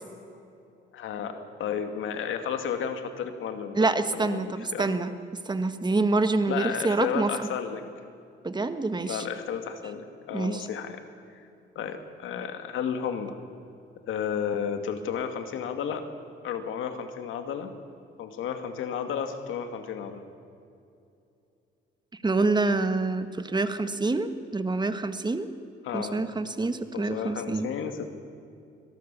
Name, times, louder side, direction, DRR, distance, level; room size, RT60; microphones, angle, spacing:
voice 1, 0.9-5.0 6.5-7.9 9.0-11.0 11.3-11.4 11.8-13.4 14.1-16.0 16.4-17.7 18.2-20.2 25.8-26.2 26.9-28.1, left 7 dB, 80° left, 7 dB, 2.3 m, -32 dB
voice 2, 3.7-5.1 5.4-7.5 8.4-9.2 10.3-10.7 22.2-25.5 25.9-27.7, right 3 dB, 20° right, 10 dB, 1.6 m, -26 dB
25.0 x 18.5 x 7.0 m, 2.6 s
cardioid pair, 90°, 20 cm